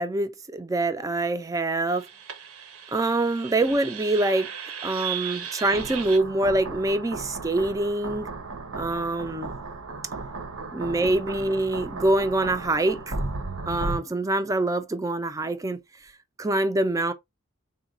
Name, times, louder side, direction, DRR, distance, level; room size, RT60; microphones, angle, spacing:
voice 1, 0.0-2.1 2.9-4.5 4.8-8.3 8.7-9.5 10.7-13.2 13.7-15.8 16.4-17.1, right 2 dB, 15° right, 0.4 m, -25 dB
sound 1, 1.9-14.0, right 4 dB, 75° right, 0.8 m, -35 dB
3.9 x 2.2 x 3.6 m
head